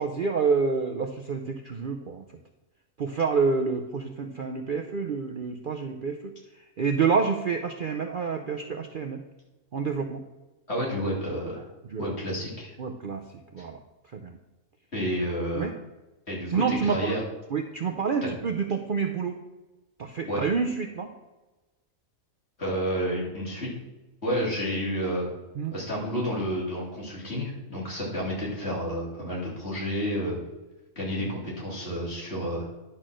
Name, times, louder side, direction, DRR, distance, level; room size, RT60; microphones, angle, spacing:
voice 1, 0.0-2.2 3.0-9.2 9.7-10.2 11.9-12.0 12.8-13.2 13.5-13.8 14.1-14.4 15.5-15.7 16.5-17.1 17.5-19.4 20.0-21.1 25.6-25.7 31.1-31.4, right 5 dB, 50° right, 4 dB, 0.6 m, -28 dB
voice 2, 10.7-11.6 12.0-12.7 13.6-13.7 14.9-15.7 16.3-17.2 18.2-18.3 20.3-20.4 22.6-23.7 24.2-25.3 25.7-30.4 30.9-32.7, equal, 50° left, -5 dB, 3.2 m, -30 dB
10.5 x 4.4 x 6.2 m, 1.1 s
omnidirectional pair, 1.4 m